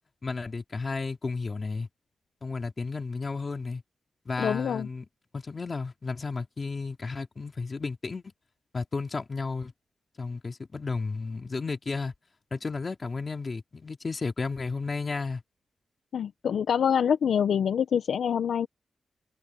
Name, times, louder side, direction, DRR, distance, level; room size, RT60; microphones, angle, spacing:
voice 1, 0.2-1.9 2.4-3.8 4.3-5.0 5.3-8.2 8.7-9.7 10.2-12.1 12.5-15.4, left 4 dB, 35° left, 2.7 m, -33 dB
voice 2, 4.4-4.9 16.1-18.7, left 8 dB, 90° left, 0.6 m, -25 dB
wide cardioid pair, 125°, 0 cm